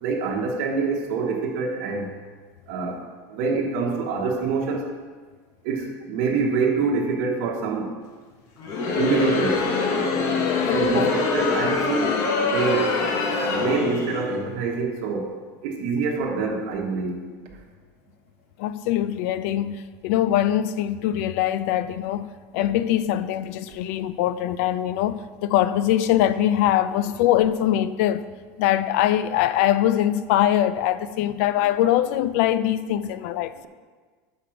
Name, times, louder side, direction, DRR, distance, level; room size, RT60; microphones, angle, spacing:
voice 1, 0.0-2.1 2.7-3.0 3.3-4.9 5.6-7.9 8.6-9.7 10.7-13.0 13.5-15.3 15.6-17.3, right 4 dB, 60° right, 1.1 m, -25 dB
Crowd, 8.6-14.3, left 4 dB, 40° left, 0.8 m, -24 dB
voice 2, 10.6-11.1 18.6-22.3 22.5-28.3 28.6-33.5, left 12 dB, 60° left, 0.4 m, -22 dB
6.3 x 5.1 x 5.8 m
supercardioid pair, 165°, 8 cm